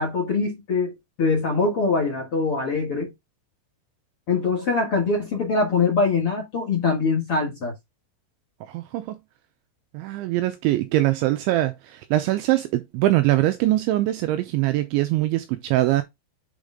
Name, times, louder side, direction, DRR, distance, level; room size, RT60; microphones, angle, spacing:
voice 1, 0.0-3.1 4.3-7.7, left 4 dB, 45° left, 2.0 m, -23 dB
voice 2, 8.7-9.2 9.9-16.0, right 16 dB, 90° right, 2.7 m, -22 dB
7.4 x 5.3 x 3.6 m
omnidirectional pair, 6.0 m